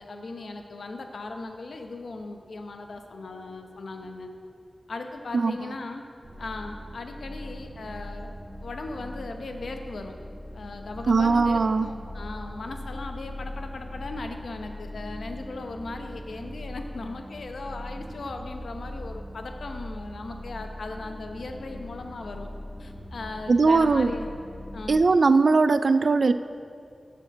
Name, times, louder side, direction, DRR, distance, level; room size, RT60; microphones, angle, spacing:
voice 1, 0.0-4.3 4.9-6.0 6.4-8.3 8.6-10.2 10.5-22.5 22.8-24.3 24.7-25.0, left 3 dB, 85° left, 5 dB, 0.8 m, -38 dB
voice 2, 5.3-5.7 11.1-11.9 23.5-24.1 24.9-26.3, right 4 dB, 70° right, 12 dB, 0.4 m, -20 dB
sound 1, 6.2-24.9, left 1 dB, 25° right, 1.3 m, -40 dB
7.4 x 7.2 x 7.2 m, 2.4 s
wide cardioid pair, 75°, 0 cm